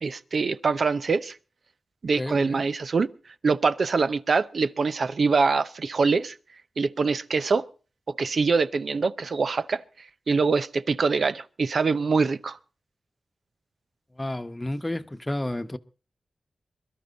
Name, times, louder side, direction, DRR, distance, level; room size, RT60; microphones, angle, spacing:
voice 1, 0.0-1.4 2.0-3.1 3.4-6.4 6.8-7.7 8.2-9.8 10.3-12.6, right 4 dB, 70° right, 0.7 m, -24 dB
voice 2, 2.2-2.6 14.2-15.8, left 1 dB, 20° left, 1.0 m, -31 dB
22.5 x 12.0 x 4.1 m
cardioid pair, 55°, 0 cm